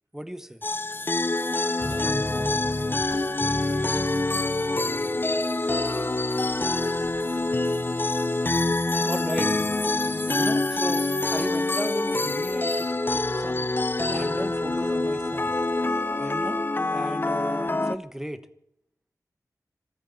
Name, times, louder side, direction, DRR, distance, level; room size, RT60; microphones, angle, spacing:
voice 1, 0.1-0.6 9.0-9.5 10.4-13.7 14.0-15.5 16.2-16.6 16.9-18.4, equal, 5° right, 11 dB, 1.3 m, -35 dB
sound 1, 0.6-18.0, left 2 dB, 30° left, 0.6 m, -26 dB
voice 2, 1.3-7.2, right 1 dB, 55° right, -3 dB, 6.9 m, -52 dB
sound 2, 1.8-5.4, left 1 dB, 10° left, 1.2 m, -33 dB
sound 3, 4.4-16.6, left 3 dB, 85° left, 5.2 m, -57 dB
25.0 x 14.5 x 4.1 m, 0.74 s
wide cardioid pair, 65°, 7 cm